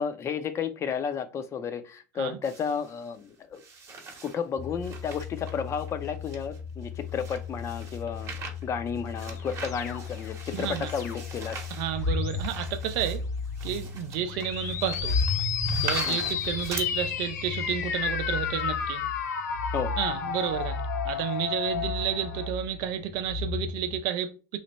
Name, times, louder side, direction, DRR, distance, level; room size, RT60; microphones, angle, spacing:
voice 1, 0.0-3.6 4.2-8.3 8.6-11.6 16.1-16.2 19.7-19.9, left 6 dB, 30° left, 0.6 m, -32 dB
sound 1, 2.4-3.0 3.5-4.4 4.8-16.9, right 4 dB, 30° right, 1.0 m, -42 dB
sound 2, 4.6-24.0, left 3 dB, 10° right, 0.9 m, -35 dB
sound 3, 9.2-11.4 12.0-12.6 14.3-22.5, left 8 dB, 75° left, 0.5 m, -33 dB
voice 2, 10.5-10.9 11.8-13.2 13.6-15.2 15.8-19.0 20.0-20.8 21.0-24.6, right 10 dB, 55° right, 0.6 m, -31 dB
3.2 x 2.1 x 4.0 m
hypercardioid pair, 90°, 9 cm